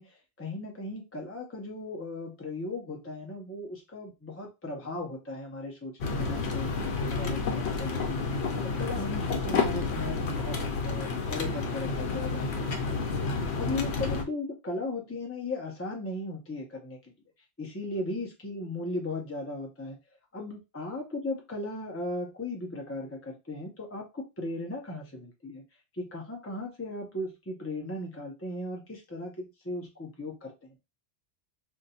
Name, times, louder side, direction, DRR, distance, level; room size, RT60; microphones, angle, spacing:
voice 1, 0.0-8.3 8.6-12.9 13.6-17.1 17.6-20.0 20.3-25.6 25.9-30.7, left 2 dB, 20° left, 0.4 m, -37 dB
sound 1, 6.0-14.2, left 4 dB, 70° left, 1.0 m, -30 dB
2.6 x 2.2 x 4.0 m
omnidirectional pair, 1.2 m